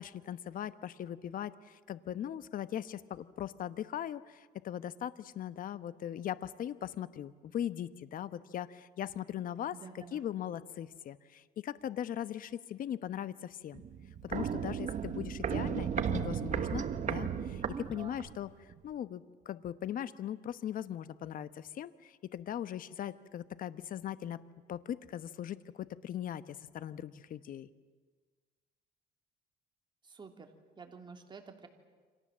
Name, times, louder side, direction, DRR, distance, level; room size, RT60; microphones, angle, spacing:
voice 1, 0.0-13.8 14.2-24.4 24.7-27.7, left 10 dB, 55° left, 13 dB, 1.1 m, -39 dB
voice 2, 9.7-10.2 17.7-18.2 30.0-30.5 30.8-31.7, right 5 dB, 25° right, 3 dB, 3.1 m, -48 dB
Walk footsteps, 13.7-18.4 18.7-18.8, right 8 dB, 45° right, 1.4 m, -35 dB
29.0 x 25.5 x 7.5 m, 1.4 s
cardioid pair, 110°, 17 cm